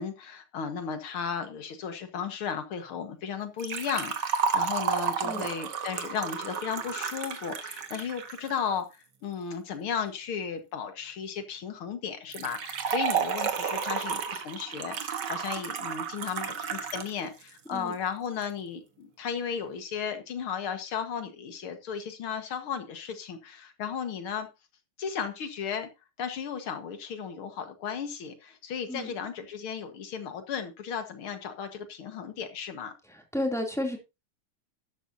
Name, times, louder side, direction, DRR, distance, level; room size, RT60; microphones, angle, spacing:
voice 1, 0.0-24.5 25.0-25.9 26.2-32.9, left 7 dB, 90° left, 2.4 m, -35 dB
Liquid, 3.6-8.6 12.3-17.1 17.4-17.5 18.4-18.5, right 6 dB, 60° right, 1.9 m, -32 dB
voice 2, 33.1-34.0, left 1 dB, ahead, 2.5 m, -32 dB
12.5 x 11.5 x 2.7 m
omnidirectional pair, 2.3 m